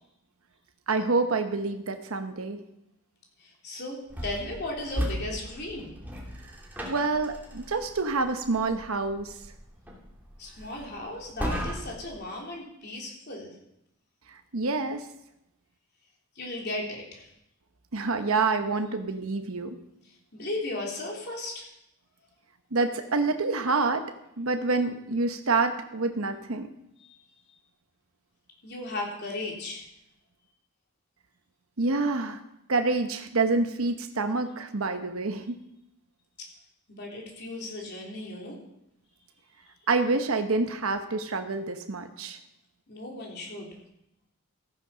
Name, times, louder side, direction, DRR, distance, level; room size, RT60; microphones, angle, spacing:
voice 1, 0.9-2.6 6.8-9.4 14.3-15.1 17.9-19.8 22.7-24.0 24.4-26.7 31.8-32.4 32.7-35.6 39.9-42.4, right 3 dB, 70° right, 6 dB, 1.0 m, -27 dB
voice 2, 3.4-5.9 10.4-13.6 16.3-17.3 20.3-21.7 27.0-27.1 28.6-29.9 36.9-38.6 42.9-43.7, left 2 dB, 50° left, -1 dB, 3.3 m, -36 dB
sound 1, 4.1-12.2, equal, 10° right, 2.6 m, -37 dB
14.5 x 9.7 x 5.6 m, 0.81 s
head